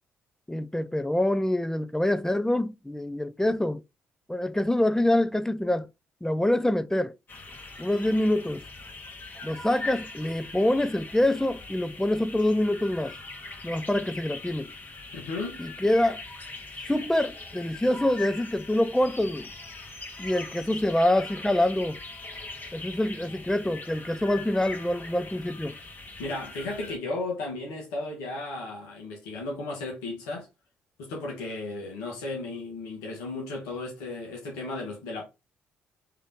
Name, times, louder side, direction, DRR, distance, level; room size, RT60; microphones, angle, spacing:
voice 1, 0.5-3.8 4.3-5.9 6.2-7.1 7.8-8.6 9.4-13.1 13.6-14.7 15.6-16.2 16.9-19.5 20.2-22.0 22.7-25.8, left 1 dB, 10° left, 0.5 m, -25 dB
sound 1, 7.3-27.0, left 3 dB, 35° left, 1.9 m, -41 dB
voice 2, 15.1-15.6 26.2-30.5 31.0-35.2, left 2 dB, 75° left, 1.5 m, -34 dB
3.7 x 3.5 x 3.9 m
hypercardioid pair, 45°, 6 cm